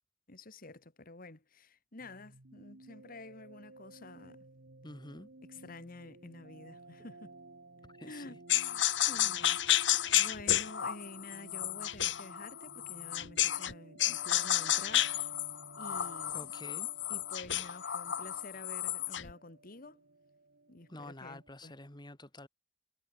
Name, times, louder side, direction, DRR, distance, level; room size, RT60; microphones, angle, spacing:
voice 1, 0.3-4.4 5.5-7.3 8.0-9.6 10.1-15.1 15.8-16.5 17.1-20.0 20.7-21.7, left 2 dB, 50° left, 2.3 m, -50 dB
sound 1, 2.0-21.5, right 2 dB, 70° right, 1.8 m, -56 dB
voice 2, 4.8-5.3 8.0-8.4 16.3-16.9 20.9-22.5, left 1 dB, 25° left, 3.0 m, -48 dB
sound 2, 8.5-13.7 14.0-19.3, left 12 dB, 75° left, 1.2 m, -31 dB
head